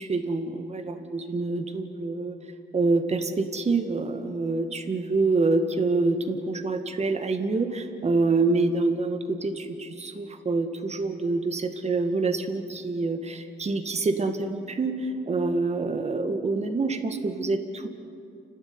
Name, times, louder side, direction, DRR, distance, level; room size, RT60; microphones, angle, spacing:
voice 1, 0.0-2.4 2.7-17.9, right 3 dB, 35° right, 6 dB, 2.2 m, -26 dB
30.0 x 12.5 x 9.8 m, 2.7 s
cardioid pair, 90°, 20 cm